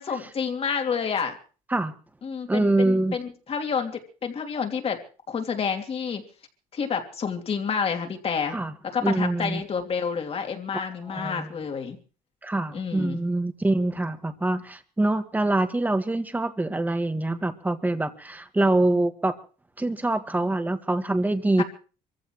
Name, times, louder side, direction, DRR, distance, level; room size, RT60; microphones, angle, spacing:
voice 1, 0.0-1.4 2.2-5.0 5.3-6.2 6.7-8.6 8.9-12.0 12.7-13.2 21.6-21.7, left 6 dB, 40° left, 5 dB, 2.9 m, -29 dB
voice 2, 2.5-3.2 8.5-8.7 9.0-9.6 11.1-11.5 12.4-19.3 19.8-21.6, right 2 dB, 10° right, 9 dB, 1.7 m, -25 dB
26.0 x 15.0 x 3.1 m, 0.37 s
cardioid pair, 105°, 14 cm